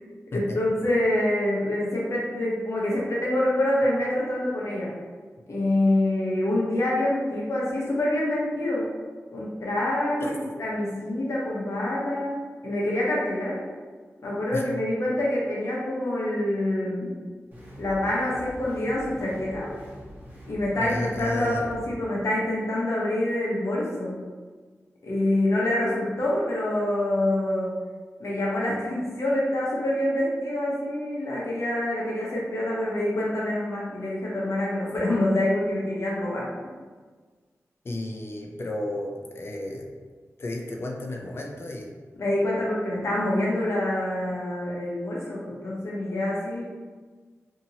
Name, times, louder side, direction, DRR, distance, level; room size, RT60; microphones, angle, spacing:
voice 1, 0.3-4.9 5.5-8.9 9.3-10.2 10.6-12.3 12.6-13.6 14.2-17.1 17.8-19.7 20.5-24.2 25.0-27.7 28.2-36.5 42.2-46.6, left 1 dB, 65° left, -5 dB, 0.9 m, -26 dB
voice 2, 10.2-10.5 14.5-14.7 20.8-21.7 37.8-39.8 40.4-41.9, left 1 dB, 50° left, 0 dB, 0.5 m, -33 dB
sound 1, 17.5-21.9, equal, 30° right, 1.0 m, -44 dB
2.8 x 2.7 x 2.7 m, 1.5 s
wide cardioid pair, 70°, 5 cm